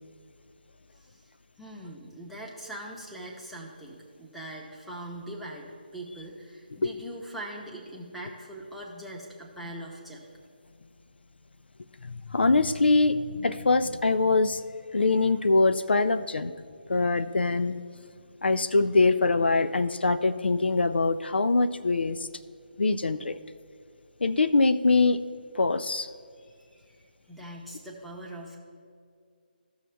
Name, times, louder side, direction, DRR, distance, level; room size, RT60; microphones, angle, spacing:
voice 1, 1.6-10.3 26.3-27.0 27.3-28.6, right 1 dB, ahead, -3 dB, 0.9 m, -42 dB
voice 2, 12.0-14.6 14.9-16.5 16.9-17.8 18.4-22.3 22.8-23.4 24.2-25.2 25.6-26.1, left 3 dB, 85° left, 13 dB, 0.4 m, -23 dB
15.0 x 6.3 x 3.4 m, 2.3 s
figure-of-eight pair, 155°, 5 cm